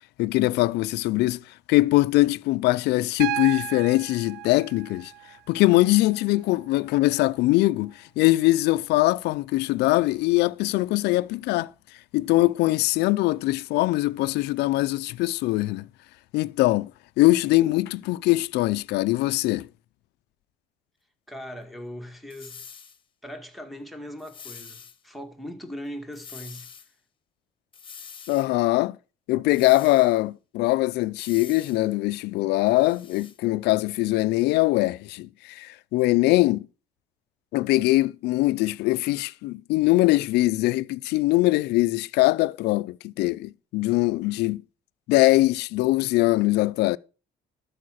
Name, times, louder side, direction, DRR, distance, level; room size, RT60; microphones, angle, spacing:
voice 1, 0.2-1.4 1.7-5.1 5.5-11.7 12.1-15.9 16.3-16.9 17.2-19.7 28.3-29.0 29.3-36.7 37.5-44.6 45.1-47.0, left 19 dB, 85° left, 0.5 m, -22 dB
Piano, 3.2-7.2 8.8-8.9, right 17 dB, 75° right, 0.5 m, -36 dB
voice 2, 21.3-22.6 23.2-26.7, equal, ahead, 2.1 m, -39 dB
sound 1, 22.3-23.0 24.2-25.0 26.1-26.9 27.7-28.5 29.5-30.2 31.2-31.8 32.7-33.4, left 6 dB, 30° left, 1.4 m, -45 dB
12.5 x 4.9 x 6.4 m
cardioid pair, 110°, 17 cm